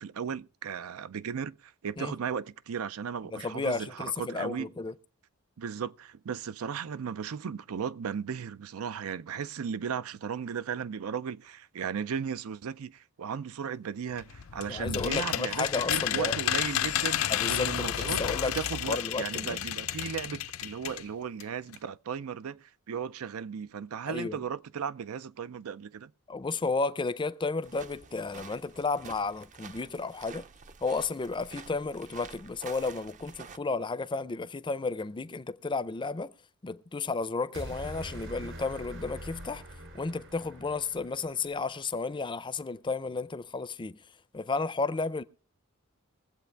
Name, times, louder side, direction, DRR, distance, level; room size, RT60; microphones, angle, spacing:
voice 1, 0.0-4.7 5.6-18.2 18.5-26.1, right 7 dB, 90° right, 0.5 m, -36 dB
voice 2, 3.3-4.9 14.7-16.4 17.3-18.6 18.9-19.6 24.1-24.4 26.3-30.5 30.8-36.3 36.6-39.6 39.9-44.0 44.3-45.2, left 4 dB, 25° left, 0.5 m, -32 dB
sound 1, 14.2-21.1 21.4-21.5 21.7-21.8, left 11 dB, 70° left, 0.5 m, -31 dB
sound 2, 27.6-33.6, right 5 dB, 35° right, 0.5 m, -48 dB
sound 3, 37.5-41.8, equal, 65° right, 3.1 m, -44 dB
22.0 x 7.9 x 3.3 m
head